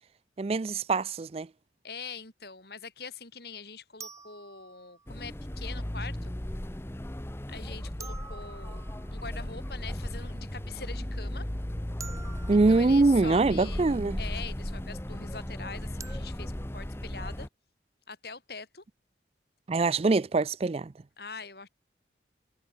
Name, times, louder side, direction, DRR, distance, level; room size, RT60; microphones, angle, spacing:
voice 1, 0.4-1.5 12.5-14.2 19.7-20.9, right 3 dB, 35° right, 0.4 m, -24 dB
sound 1, 0.6-0.7 4.0-5.3 8.0-9.4 12.0-13.2 16.0-16.2, right 5 dB, 20° right, 6.4 m, -47 dB
voice 2, 1.8-6.3 7.5-8.8 9.1-11.5 12.5-17.5 18.1-18.8 21.2-21.7, left 5 dB, 60° left, 3.9 m, -43 dB
sound 2, 5.1-17.5, left 1 dB, 15° left, 0.8 m, -36 dB
head